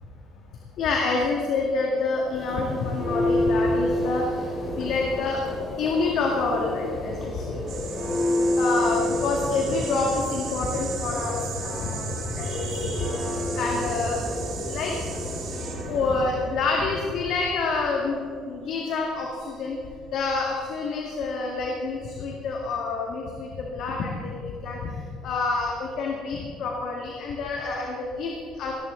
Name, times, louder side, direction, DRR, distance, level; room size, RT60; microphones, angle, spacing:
voice 1, 0.8-4.5 4.8-5.4 5.8-8.1 8.6-13.2 13.5-14.2 14.7-15.2 15.8-18.2 18.4-19.8 20.1-24.9 25.2-28.7, left 3 dB, 70° left, 0 dB, 2.0 m, -27 dB
Church bell, 2.1-16.4, left 1 dB, 40° left, 4.2 m, -29 dB
sound 1, 7.7-18.2 18.9-20.3, right 6 dB, 65° right, 4.1 m, -38 dB
18.0 x 14.5 x 3.9 m, 2.4 s
supercardioid pair, 85°, 0 cm